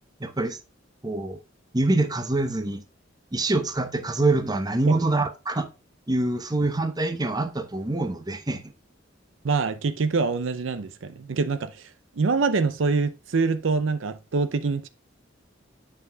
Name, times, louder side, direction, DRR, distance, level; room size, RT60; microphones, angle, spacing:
voice 1, 0.2-0.6 1.0-1.4 1.7-2.8 3.3-5.7 6.1-8.6, right 2 dB, 20° right, 0.8 m, -25 dB
voice 2, 9.4-14.9, right 4 dB, 75° right, 0.6 m, -25 dB
8.2 x 5.7 x 2.3 m
head